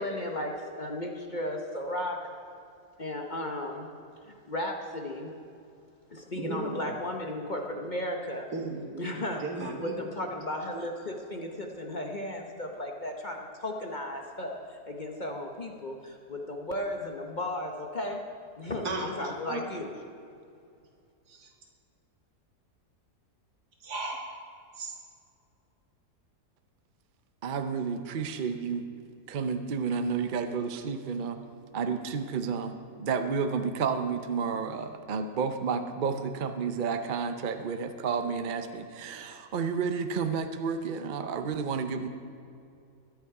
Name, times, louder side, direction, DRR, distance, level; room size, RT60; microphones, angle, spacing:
voice 1, 0.0-2.2 3.0-3.9 4.2-5.3 6.1-8.5 9.0-18.2 18.6-19.9, left 1 dB, 35° left, 2 dB, 0.9 m, -35 dB
voice 2, 6.4-6.8 8.5-9.9 18.8-19.1 19.5-19.6 21.3-21.5 23.8-24.4 24.8-24.9, right 3 dB, 80° right, 1 dB, 2.2 m, -35 dB
voice 3, 27.4-28.9 29.3-31.4 31.7-42.1, right 5 dB, 50° right, 8 dB, 0.6 m, -31 dB
21.5 x 8.2 x 4.8 m, 2.4 s
omnidirectional pair, 1.7 m